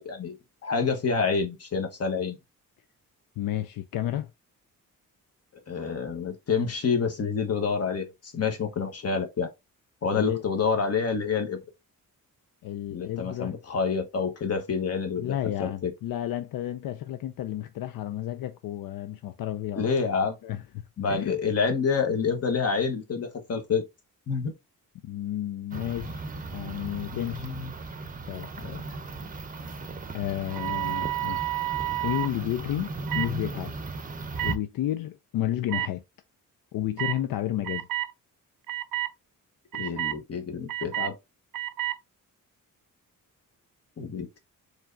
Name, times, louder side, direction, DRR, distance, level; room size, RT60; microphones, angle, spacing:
voice 1, 0.0-2.4 5.7-9.5 10.0-11.6 12.9-15.3 15.6-15.9 19.8-20.4 21.0-23.8 24.3-24.5 27.1-27.7 28.6-28.8 39.7-41.2 44.0-44.4, left 5 dB, 45° left, 1.2 m, -28 dB
voice 2, 3.4-4.3 10.1-10.4 12.6-13.6 15.2-19.9 20.4-21.4 25.0-27.5 28.3-28.5 30.1-31.6 32.0-33.7 34.4-36.0 36.7-37.9, left 12 dB, 80° left, 0.5 m, -32 dB
sound 1, 25.7-34.6, right 3 dB, 25° right, 0.6 m, -37 dB
sound 2, 30.5-32.3 33.1-33.3 34.4-34.6 35.7-35.9 37.0-37.2 37.6-38.1 38.7-39.1 39.7-40.2 40.7-41.1 41.5-42.0, right 16 dB, 80° right, 0.5 m, -30 dB
4.5 x 3.2 x 2.6 m
cardioid pair, 110°, 33 cm